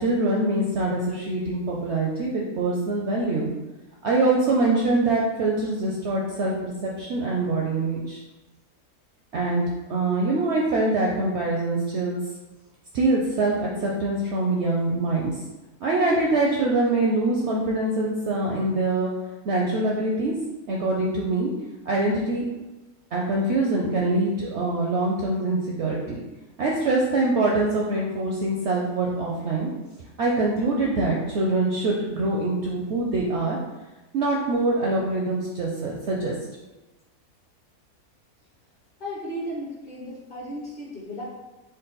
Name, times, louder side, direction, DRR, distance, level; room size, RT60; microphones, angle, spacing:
voice 1, 0.0-3.5 4.0-8.2 9.3-9.6 9.9-12.2 12.9-15.3 15.8-19.1 19.4-20.3 20.7-21.5 21.9-22.5 23.1-26.2 26.6-29.7 30.2-33.6 34.1-36.3, right 2 dB, 70° right, -2 dB, 0.6 m, -24 dB
voice 2, 39.0-41.4, equal, 45° left, -5 dB, 0.8 m, -35 dB
3.8 x 2.2 x 3.9 m, 1.1 s
omnidirectional pair, 1.6 m